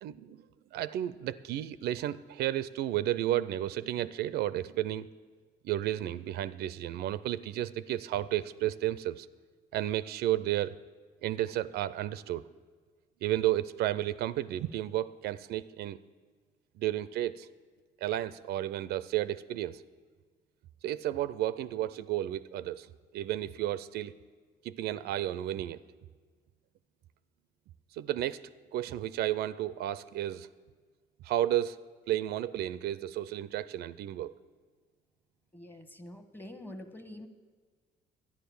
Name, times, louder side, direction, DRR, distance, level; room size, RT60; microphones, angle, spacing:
voice 1, 0.0-0.4 0.7-5.1 5.6-9.3 9.7-10.7 11.2-12.4 13.2-16.0 16.8-17.5 18.0-19.8 20.8-22.9 23.1-24.1 24.6-25.8 27.9-28.4 28.7-30.5 31.2-34.3, right 13 dB, 75° right, 17 dB, 0.4 m, -32 dB
voice 2, 35.5-37.3, left 1 dB, 10° left, 9 dB, 1.1 m, -46 dB
11.5 x 9.8 x 7.0 m, 1.5 s
cardioid pair, 110°, 17 cm